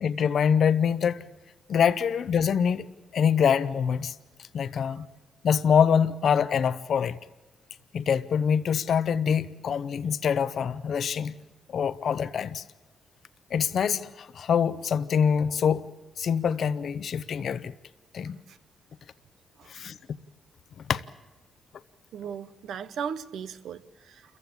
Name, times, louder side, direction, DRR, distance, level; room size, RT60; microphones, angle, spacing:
voice 1, 0.0-1.2 1.7-4.1 4.5-5.1 5.4-7.2 7.9-11.4 11.7-12.6 13.5-17.7 18.1-18.4 19.7-20.0 20.9-21.0, left 7 dB, 65° left, 0.8 m, -25 dB
voice 2, 22.1-24.4, right 7 dB, 80° right, 1.1 m, -37 dB
28.5 x 15.0 x 8.7 m
cardioid pair, 90°, 0 cm